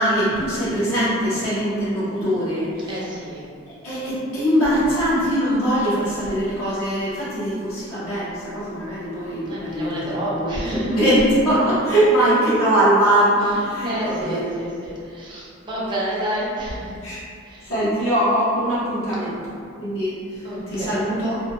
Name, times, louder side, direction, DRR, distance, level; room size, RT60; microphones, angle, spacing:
voice 1, 0.0-3.1 3.8-14.5 17.0-17.2 17.7-20.1 20.7-21.4, right 1 dB, 85° left, -10 dB, 0.8 m, -21 dB
voice 2, 2.9-3.4 9.4-10.9 13.8-16.9 17.4-17.7 20.4-21.1, right 1 dB, 20° right, -8 dB, 0.5 m, -29 dB
2.5 x 2.2 x 2.8 m, 2.3 s
head